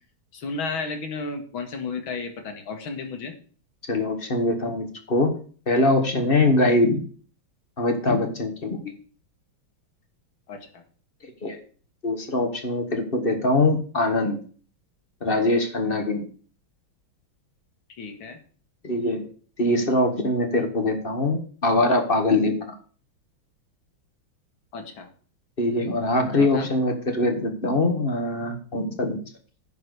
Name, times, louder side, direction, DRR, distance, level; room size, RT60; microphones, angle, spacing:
voice 1, 0.3-3.4 10.5-10.8 17.9-18.4 24.7-25.1 26.3-26.7, left 4 dB, 75° left, 5 dB, 2.4 m, -33 dB
voice 2, 3.9-5.3 5.7-7.0 7.8-8.9 11.4-11.6 12.0-14.4 15.2-16.2 18.8-19.2 19.6-22.7 25.6-29.2, left 2 dB, 30° left, 5 dB, 1.6 m, -23 dB
10.5 x 4.7 x 8.1 m, 0.42 s
omnidirectional pair, 2.3 m